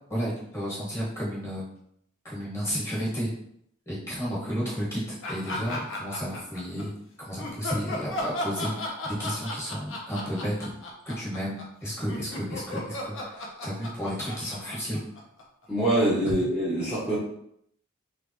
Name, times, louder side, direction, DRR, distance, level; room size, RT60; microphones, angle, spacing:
voice 1, 0.1-1.7 2.2-3.3 3.8-6.9 7.2-10.7 11.0-15.0 16.3-16.5, equal, 15° left, -7 dB, 1.6 m, -32 dB
sound 1, 5.2-6.8 7.4-15.6, left 2 dB, 65° left, 0.9 m, -35 dB
voice 2, 15.7-17.2, right 1 dB, 5° right, -10 dB, 0.9 m, -24 dB
3.7 x 3.3 x 3.0 m, 0.71 s
head